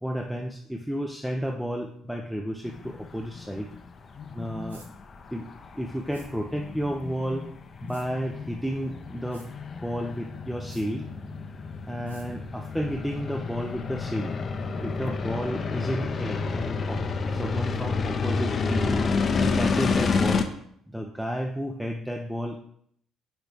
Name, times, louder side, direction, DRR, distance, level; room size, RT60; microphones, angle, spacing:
voice 1, 0.0-3.7 4.3-4.8 5.3-5.5 5.7-7.5 7.8-9.5 9.8-11.1 11.9-14.3 14.8-19.0 19.4-20.5 20.9-22.6, equal, ahead, 2 dB, 0.6 m, -32 dB
sound 1, 2.6-20.4, left 4 dB, 40° left, 0.6 m, -30 dB
sound 2, 4.7-4.9 6.1-6.3 7.9-8.1 9.3-9.5 10.7-10.9 12.1-12.3, right 2 dB, 90° right, 0.7 m, -51 dB
6.4 x 4.4 x 3.5 m, 0.66 s
figure-of-eight pair, 50°, 0 cm